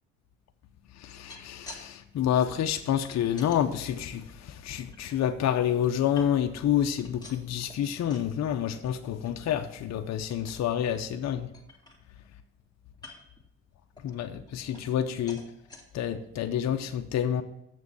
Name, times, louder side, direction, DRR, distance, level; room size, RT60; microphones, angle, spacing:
voice 1, 1.0-11.5 14.0-15.4 15.9-17.4, left 10 dB, 60° left, 7 dB, 0.7 m, -28 dB
sound 1, 1.1-1.9 2.1-3.6 4.2-5.2 5.6-6.6 6.9-8.3 8.7-8.9 9.2-9.3 9.7-9.9 10.3-10.7 11.2-11.3 11.5-12.3 12.9-13.4 14.0-15.0 15.3-15.8 16.4-16.5 16.8-16.9, left 2 dB, 15° left, 2.3 m, -50 dB
7.5 x 6.3 x 7.2 m, 0.82 s
cardioid pair, 90°, 30 cm